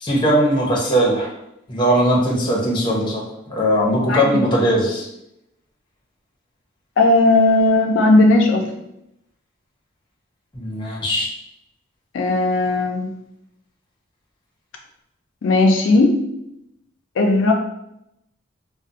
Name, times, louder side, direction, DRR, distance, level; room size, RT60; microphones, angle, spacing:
voice 1, 0.0-1.3 1.7-3.2 3.5-5.1 10.5-11.3, equal, 25° left, -2 dB, 0.7 m, -19 dB
voice 2, 7.0-8.7 12.1-13.1 15.4-16.2 17.2-17.5, left 2 dB, 75° left, 2 dB, 0.4 m, -16 dB
2.4 x 2.0 x 3.9 m, 0.82 s
head